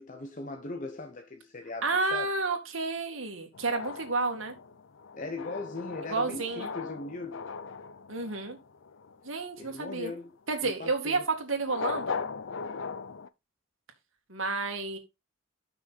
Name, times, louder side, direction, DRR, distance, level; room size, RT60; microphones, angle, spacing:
voice 1, 0.0-2.3 5.1-7.5 9.6-10.3 10.6-11.2 12.6-12.8, left 3 dB, 40° left, 1.0 m, -39 dB
voice 2, 1.8-4.6 6.1-6.7 8.1-8.6 9.2-10.1 10.5-12.2 14.3-15.0, right 3 dB, 75° right, 2.2 m, -30 dB
sound 1, 3.5-9.3 11.6-13.3, left 5 dB, 70° left, 0.6 m, -39 dB
7.7 x 6.0 x 3.9 m
head